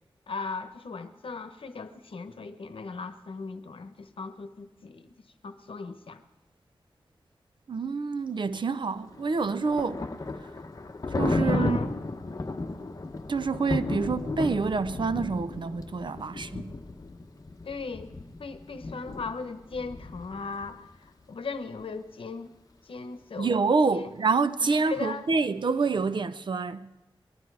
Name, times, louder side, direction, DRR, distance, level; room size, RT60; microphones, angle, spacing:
voice 1, 0.3-5.1 5.4-6.2 11.4-12.0 17.6-18.1 18.4-22.5 22.8-23.6 23.9-24.1 24.6-25.3, left 4 dB, 75° left, 0.9 m, -38 dB
voice 2, 7.7-10.0 11.2-11.8 13.3-16.7 23.4-26.9, right 4 dB, 60° right, 0.6 m, -27 dB
Thunder, 9.0-20.7, left 2 dB, 40° left, 1.0 m, -34 dB
20.0 x 12.5 x 4.8 m
wide cardioid pair, 110°, 9 cm